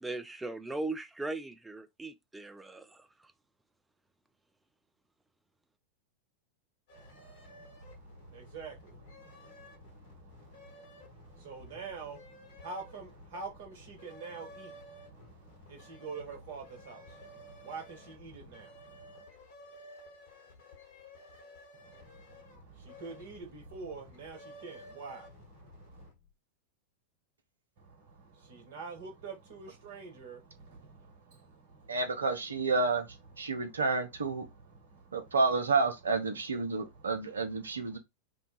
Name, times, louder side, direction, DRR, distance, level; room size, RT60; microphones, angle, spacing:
voice 1, 0.0-3.1, right 2 dB, 10° right, 0.4 m, -38 dB
sound 1, 6.9-26.3, left 2 dB, 50° left, 1.4 m, -54 dB
voice 2, 6.9-19.2 21.7-26.1 28.4-32.0 33.4-33.7 34.4-35.3 36.9-37.1 37.9-38.0, right 4 dB, 55° right, 1.0 m, -47 dB
voice 3, 31.9-34.5 35.1-38.0, right 3 dB, 70° right, 0.5 m, -30 dB
2.6 x 2.2 x 3.9 m
figure-of-eight pair, 90°, 0 cm